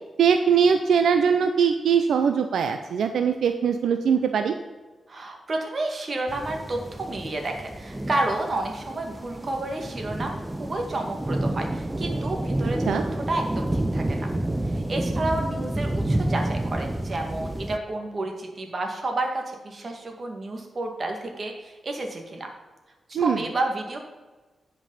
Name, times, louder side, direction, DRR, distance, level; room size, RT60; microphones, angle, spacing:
voice 1, 0.2-4.6 12.9-13.0 23.1-23.4, right 6 dB, 90° right, 8 dB, 0.5 m, -21 dB
voice 2, 5.1-14.3 14.7-22.5 23.1-24.0, right 2 dB, 45° right, 3 dB, 2.0 m, -30 dB
sound 1, 6.3-17.8, right 1 dB, 15° right, 0.6 m, -29 dB
10.0 x 5.3 x 5.7 m, 1.3 s
cardioid pair, 80°, 0 cm